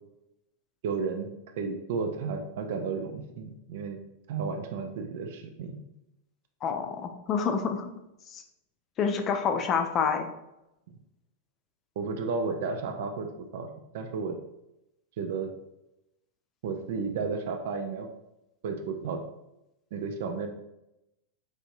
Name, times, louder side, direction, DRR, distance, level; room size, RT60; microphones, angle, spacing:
voice 1, 0.8-1.3 1.6-4.0 4.3-5.8 12.0-14.4 15.2-15.5 16.6-18.1 18.6-19.2 19.9-20.5, right 5 dB, 55° right, 5 dB, 0.4 m, -33 dB
voice 2, 6.6-7.9 8.3-8.4 9.0-10.3, left 6 dB, 30° left, 6 dB, 0.4 m, -28 dB
4.8 x 2.6 x 2.6 m, 0.90 s
figure-of-eight pair, 90°, 0 cm